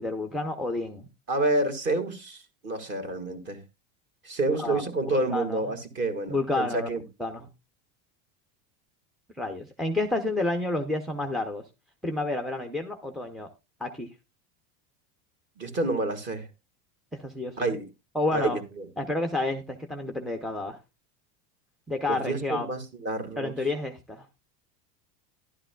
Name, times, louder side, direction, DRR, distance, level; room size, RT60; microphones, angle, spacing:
voice 1, 0.0-1.1 4.6-4.8 5.1-5.6 6.3-6.9 7.2-7.5 9.4-11.6 12.0-13.5 13.8-14.1 17.2-17.6 18.1-18.6 19.0-20.8 21.9-22.7 23.4-24.3, left 2 dB, ahead, 0.5 m, -30 dB
voice 2, 1.3-3.6 4.2-7.0 15.6-16.5 17.6-17.9 18.3-18.9 22.1-23.5, right 2 dB, 30° right, 1.7 m, -29 dB
12.5 x 11.5 x 2.2 m
supercardioid pair, 155°, 37 cm